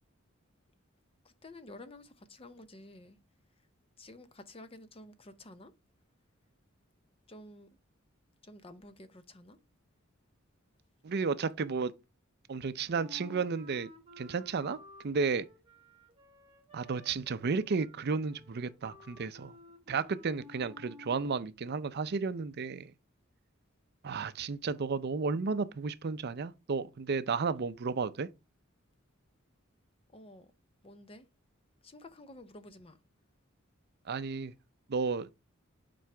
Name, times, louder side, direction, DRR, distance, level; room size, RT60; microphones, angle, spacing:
voice 1, 1.2-3.2 4.0-5.7 7.3-7.7 8.4-9.6 30.1-30.5 30.8-31.3 31.8-33.0, left 1 dB, 30° left, 0.7 m, -51 dB
voice 2, 11.0-11.9 12.5-13.9 14.2-14.8 15.0-15.5 16.7-19.5 19.9-22.9 24.0-28.3 34.1-34.5 34.9-35.3, right 5 dB, 55° right, 0.5 m, -33 dB
Wind instrument woodwind instrument, 13.0-21.4, left 2 dB, 30° right, 1.1 m, -54 dB
7.6 x 4.7 x 3.3 m
head